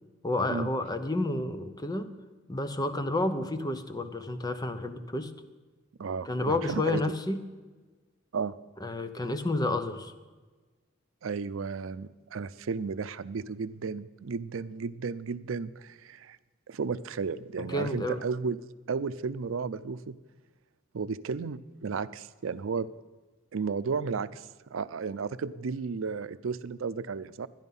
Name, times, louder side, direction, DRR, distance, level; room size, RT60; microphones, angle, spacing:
voice 1, 0.2-2.1 2.5-5.3 6.3-7.4 8.8-10.1 17.6-18.2, left 2 dB, 20° left, 10 dB, 0.7 m, -30 dB
voice 2, 6.0-7.0 8.3-8.5 11.2-16.4 16.7-18.6 18.9-20.2 20.9-22.9 23.5-27.5, right 5 dB, 90° right, 15 dB, 0.5 m, -33 dB
12.5 x 10.5 x 5.5 m, 1.3 s
head